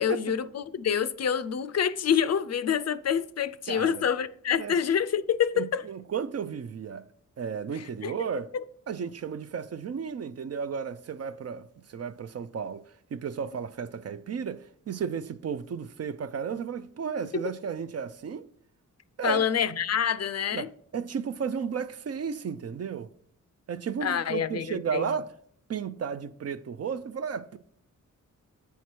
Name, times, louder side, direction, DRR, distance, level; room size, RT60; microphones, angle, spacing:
voice 1, 0.0-5.8 7.8-8.1 19.2-20.7 24.0-25.0, left 8 dB, 55° left, 0.5 m, -27 dB
voice 2, 3.7-4.0 4.6-4.8 5.5-7.1 7.4-8.5 8.9-18.5 19.2-19.4 20.5-23.1 23.7-25.3 25.7-27.6, right 6 dB, 50° right, 0.5 m, -33 dB
8.3 x 4.6 x 4.5 m
cardioid pair, 75°, 32 cm